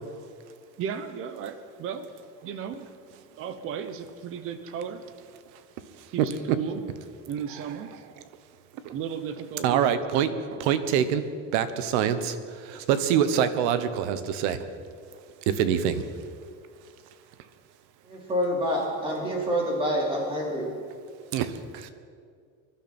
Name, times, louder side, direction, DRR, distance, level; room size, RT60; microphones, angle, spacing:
voice 1, 0.8-2.1 2.4-2.9 3.4-5.0 6.1-6.9 7.3-7.9 8.9-10.3, right 8 dB, 40° right, 10 dB, 0.9 m, -35 dB
voice 2, 6.2-6.6 7.5-7.6 8.8-8.9 9.6-11.2 11.5-12.4 12.6-14.6 15.5-16.0 21.3-21.9, right 9 dB, 85° right, 12 dB, 1.1 m, -25 dB
voice 3, 18.1-20.7, equal, 15° right, -2 dB, 3.1 m, -27 dB
23.5 x 12.0 x 4.4 m, 2.2 s
cardioid pair, 170°, 33 cm